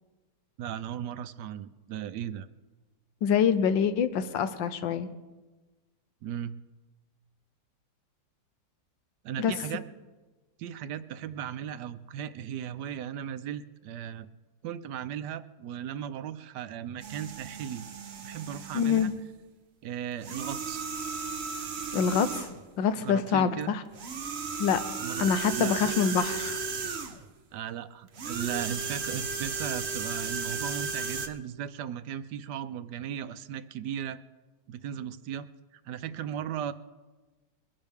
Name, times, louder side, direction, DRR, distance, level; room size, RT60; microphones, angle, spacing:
voice 1, 0.6-2.5 6.2-6.5 9.2-9.8 10.6-14.3 14.6-17.8 18.2-19.1 19.8-20.8 23.0-23.7 25.0-25.9 27.5-34.2 34.7-35.5 35.7-36.7, right 9 dB, 70° right, 13 dB, 1.1 m, -36 dB
voice 2, 3.2-5.1 9.4-9.5 18.7-19.1 21.9-22.5 22.8-23.8 24.6-24.8 25.2-26.6, left 7 dB, 80° left, 11 dB, 1.5 m, -25 dB
sound 1, 17.0-19.2 20.2-22.6 23.9-27.3 28.1-31.3, right 5 dB, 45° right, 0.9 m, -35 dB
22.5 x 11.0 x 3.5 m, 1.2 s
omnidirectional pair, 2.0 m